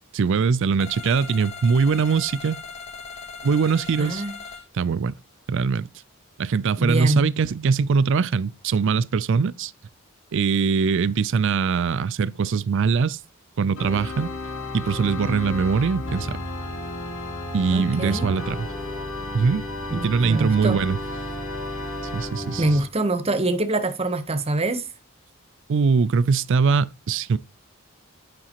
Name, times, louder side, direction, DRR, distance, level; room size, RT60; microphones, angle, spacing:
voice 1, 0.1-2.6 3.4-4.2 4.7-5.1 5.5-5.9 6.4-9.7 10.3-13.2 13.6-14.3 14.7-16.4 17.5-18.7 19.3-19.7 19.9-21.0 22.1-22.8 25.7-27.4, right 5 dB, 60° right, 0.4 m, -22 dB
sound 1, 0.8-4.6, left 5 dB, 35° left, 1.8 m, -39 dB
voice 2, 4.0-4.3 6.8-7.3 17.7-18.3 19.9-20.8 22.6-24.8, right 2 dB, 30° right, 0.9 m, -24 dB
Organ, 13.8-22.9, left 1 dB, 70° left, 3.1 m, -32 dB
9.9 x 6.1 x 2.9 m
head